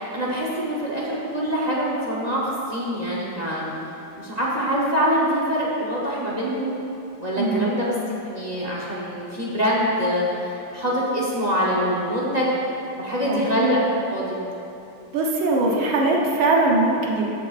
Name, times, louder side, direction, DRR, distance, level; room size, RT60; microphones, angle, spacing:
voice 1, 0.0-3.7 4.2-6.8 7.2-7.9 8.2-12.5 13.0-13.8 14.1-14.4, equal, 55° right, -6 dB, 0.4 m, -24 dB
voice 2, 7.4-7.7 13.2-13.4 15.1-17.3, right 2 dB, 70° right, -2 dB, 1.8 m, -21 dB
14.0 x 6.7 x 2.5 m, 2.8 s
omnidirectional pair, 2.4 m